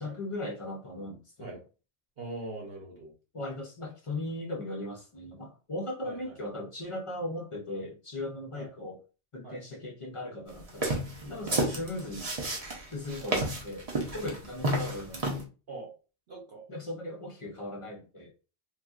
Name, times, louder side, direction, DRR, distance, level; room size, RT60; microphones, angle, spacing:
voice 1, 0.0-1.2 1.5-1.6 3.3-9.0 9.3-12.3 12.9-13.9 14.1-15.5 16.7-18.3, left 1 dB, 40° left, 0.4 m, -38 dB
voice 2, 2.2-3.1 6.0-6.4 8.5-8.7 9.4-9.6 11.4-11.6 13.2-13.3 15.7-15.9 16.3-16.6, right 2 dB, 60° right, 1.0 m, -42 dB
sound 1, 10.7-15.4, right 1 dB, 35° right, 0.7 m, -31 dB
3.0 x 2.5 x 2.4 m
omnidirectional pair, 1.2 m